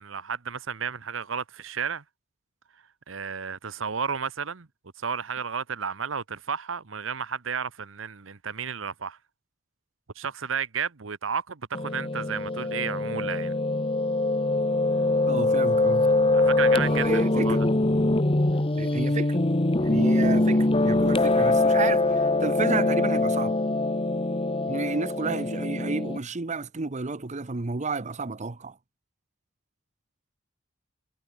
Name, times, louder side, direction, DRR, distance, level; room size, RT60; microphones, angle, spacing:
voice 1, 0.0-2.0 3.1-4.7 5.0-9.2 10.1-13.5 16.3-17.6, right 6 dB, 75° right, 1.0 m, -32 dB
Piano, 11.7-26.2, left 2 dB, 30° left, 1.2 m, -23 dB
voice 2, 15.2-16.1 16.7-17.6 18.8-19.4 19.8-23.6 24.7-28.8, right 3 dB, 35° right, 0.8 m, -31 dB
head